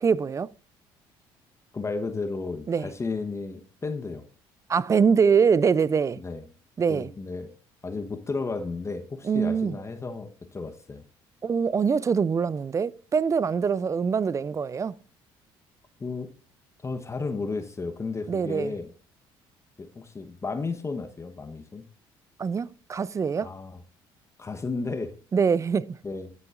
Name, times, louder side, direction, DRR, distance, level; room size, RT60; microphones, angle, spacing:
voice 1, 0.0-0.5 2.7-2.9 4.7-6.2 6.8-7.1 9.2-9.8 11.4-15.0 18.3-18.7 22.4-23.5 25.3-26.0, right 6 dB, 30° right, 0.4 m, -24 dB
voice 2, 1.7-4.2 6.2-6.5 6.9-7.5 7.8-11.0 16.0-16.3 16.8-18.9 19.8-21.8 23.4-23.8 24.4-25.1 26.0-26.3, left 3 dB, 25° left, 1.0 m, -33 dB
11.5 x 6.8 x 2.4 m
supercardioid pair, 70°, 11 cm